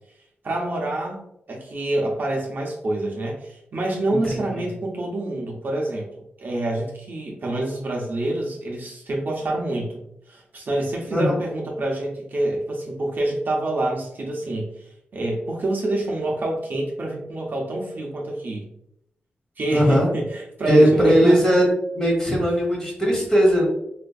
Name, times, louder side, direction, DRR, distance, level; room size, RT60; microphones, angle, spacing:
voice 1, 0.4-1.2 1.5-6.1 6.4-10.0 10.3-14.8 15.1-18.7 19.6-21.4, right 1 dB, 55° right, -1 dB, 0.7 m, -26 dB
voice 2, 4.1-4.7 11.1-11.4 19.7-20.1 20.7-21.7 21.9-23.6, equal, 15° left, -3 dB, 1.3 m, -19 dB
4.1 x 2.5 x 2.3 m, 0.78 s
wide cardioid pair, 110°, 4 cm